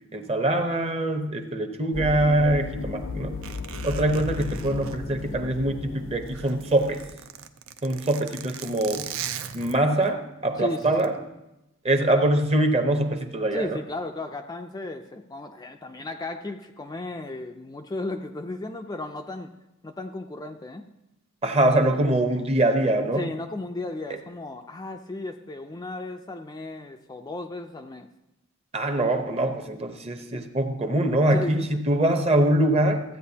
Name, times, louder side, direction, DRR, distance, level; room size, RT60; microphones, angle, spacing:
voice 1, 0.1-3.4 3.8-7.0 7.8-9.1 9.5-11.2 11.8-13.8 21.4-23.3 24.1-24.2 28.7-33.0, right 1 dB, 30° right, 6 dB, 0.8 m, -23 dB
sound 1, 1.9-7.1, left 4 dB, 65° left, 0.6 m, -35 dB
Zipper (clothing), 3.4-5.8 6.2-10.1 10.8-11.1, right 9 dB, 75° right, 0.5 m, -39 dB
voice 2, 10.6-11.1 13.5-19.5 19.8-20.8 23.2-28.1 31.3-32.0, left 2 dB, 20° left, 5 dB, 0.4 m, -35 dB
15.0 x 8.8 x 2.8 m, 0.92 s
head